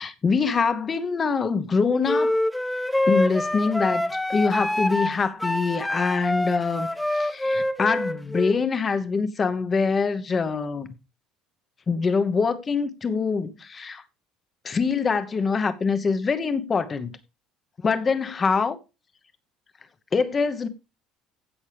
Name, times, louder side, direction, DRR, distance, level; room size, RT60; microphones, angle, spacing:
voice 1, 0.0-2.4 3.1-10.9 11.9-14.0 14.6-17.1 17.8-18.8 20.1-20.7, left 5 dB, 20° left, 1.0 m, -24 dB
sound 1, 2.1-8.6, left 1 dB, 5° left, 0.6 m, -25 dB
16.0 x 6.2 x 3.4 m
cardioid pair, 175°, 0 cm